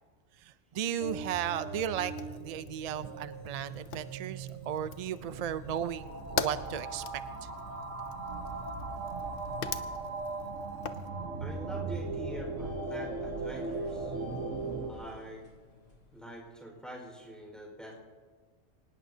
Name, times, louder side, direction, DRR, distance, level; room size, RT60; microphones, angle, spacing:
voice 1, 0.4-7.5, right 9 dB, 70° right, 13 dB, 0.3 m, -35 dB
sound 1, 1.0-14.9, right 3 dB, 90° right, 1.5 m, -39 dB
Fire, 1.7-11.1, left 6 dB, 55° left, 0.8 m, -42 dB
sound 2, 2.1-16.5, left 5 dB, 90° left, 2.9 m, -57 dB
voice 2, 11.4-14.2 14.9-15.4 16.1-17.9, right 1 dB, ahead, -1 dB, 4.5 m, -45 dB
24.5 x 19.0 x 2.8 m, 1.5 s
omnidirectional pair, 1.3 m